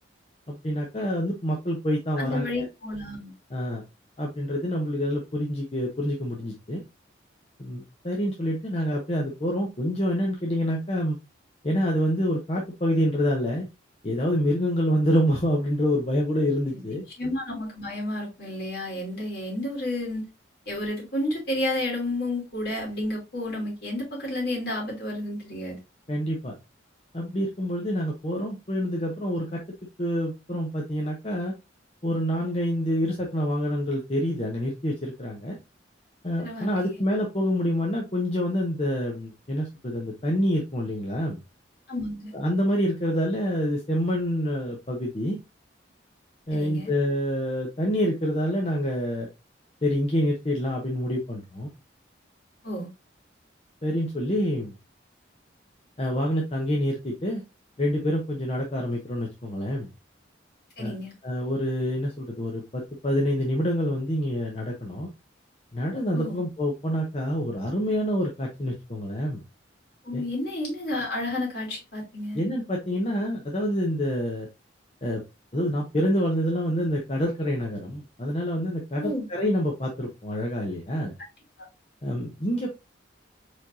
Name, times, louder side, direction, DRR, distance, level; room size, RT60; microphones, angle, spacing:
voice 1, 0.5-2.7 3.5-3.8 4.2-6.8 7.6-11.2 11.6-13.7 14.0-17.0 26.1-26.5 27.1-29.6 30.0-31.5 32.0-35.6 36.2-41.4 42.3-45.4 46.5-49.3 49.8-51.7 53.8-54.7 56.0-57.4 57.8-59.9 60.8-60.9 61.2-65.1 65.7-69.4 70.1-70.2 72.3-74.5 75.0-75.2 75.5-81.1 82.0-82.7, equal, 30° left, 0.8 m, -27 dB
voice 2, 2.2-3.3 16.7-16.8 17.2-20.2 20.7-25.8 36.4-37.0 41.9-42.3 46.5-46.9 52.6-52.9 60.8-61.1 66.1-66.4 70.0-72.4 79.0-79.3, left 1 dB, 55° left, 2.9 m, -31 dB
4.7 x 4.4 x 2.6 m
head